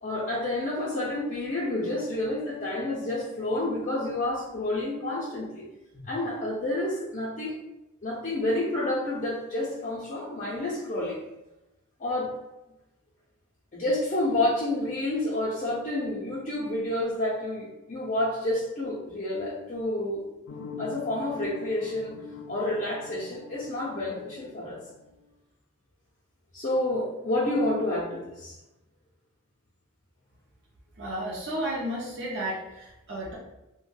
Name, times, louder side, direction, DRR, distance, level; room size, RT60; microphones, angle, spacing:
voice 1, 0.0-5.6 5.9-7.5 8.0-11.2 12.0-12.3 13.7-20.2 20.8-22.1 22.5-24.8 26.5-28.6, left 1 dB, 35° left, -7 dB, 0.5 m, -29 dB
sound 1, 20.5-25.2, left 5 dB, 85° left, 0.3 m, -44 dB
voice 2, 31.0-33.3, right 1 dB, 55° right, -5 dB, 0.5 m, -33 dB
2.4 x 2.1 x 3.3 m, 0.96 s
head